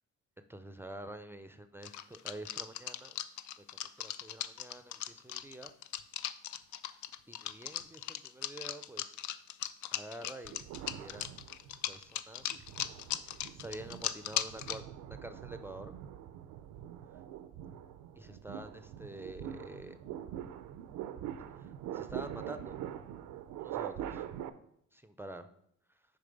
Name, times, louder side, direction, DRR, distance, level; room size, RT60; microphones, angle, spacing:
voice 1, 0.5-3.2 3.7-5.7 7.3-9.2 9.9-11.3 11.9-12.7 13.3-15.9 18.2-20.0 21.9-22.8 23.6-24.2 24.9-25.5, right 1 dB, 10° right, 9 dB, 0.4 m, -47 dB
sound 1, 1.8-14.8, left 11 dB, 70° left, 0.4 m, -38 dB
sound 2, 10.5-11.9 12.4-24.5, right 10 dB, 90° right, 0.5 m, -44 dB
6.8 x 3.9 x 5.1 m, 0.71 s
cardioid pair, 90°, 30 cm